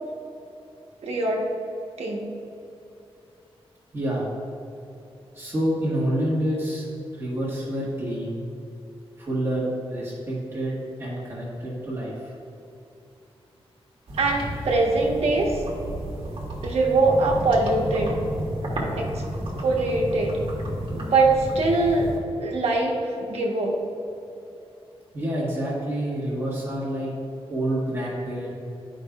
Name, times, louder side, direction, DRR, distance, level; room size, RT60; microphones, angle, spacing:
voice 1, 1.0-1.4 2.0-2.3 14.2-15.6 16.6-18.2 19.0-19.2 19.6-20.4 20.9-22.1 22.4-23.8, right 2 dB, 80° right, -1 dB, 1.2 m, -22 dB
voice 2, 3.9-4.3 5.3-8.4 9.2-12.3 25.1-27.1 27.5-28.6, right 1 dB, 25° right, -8 dB, 1.5 m, -28 dB
sound 1, 14.1-22.2, right 1 dB, 60° right, 1.5 m, -32 dB
11.5 x 5.2 x 2.4 m, 2.8 s
wide cardioid pair, 180°, 10 cm